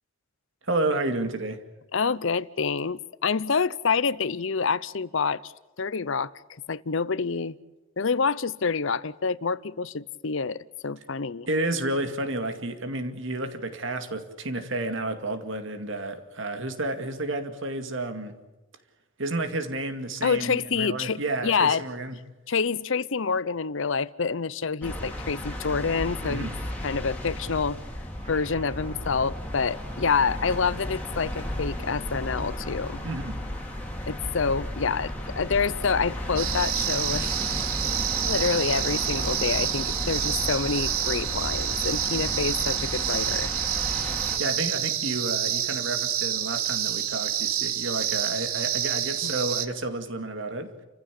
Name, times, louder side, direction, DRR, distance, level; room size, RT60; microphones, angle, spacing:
voice 1, 0.6-1.6 11.5-18.3 19.2-22.2 26.2-26.6 33.0-33.4 44.1-50.7, right 2 dB, 60° right, 8 dB, 2.3 m, -31 dB
voice 2, 1.9-5.5 5.8-6.3 6.7-7.6 8.0-11.5 20.2-21.8 22.5-26.5 26.8-27.8 28.3-33.0 34.1-37.4 38.3-43.5 49.2-49.3, left 5 dB, 60° left, 19 dB, 0.7 m, -27 dB
sound 1, 24.8-44.4, left 1 dB, 5° left, 3.2 m, -34 dB
sound 2, 27.5-33.0, equal, 35° right, 4.0 m, -51 dB
sound 3, 36.4-49.7, right 10 dB, 80° right, 1.3 m, -28 dB
29.5 x 15.0 x 8.4 m, 1.1 s
head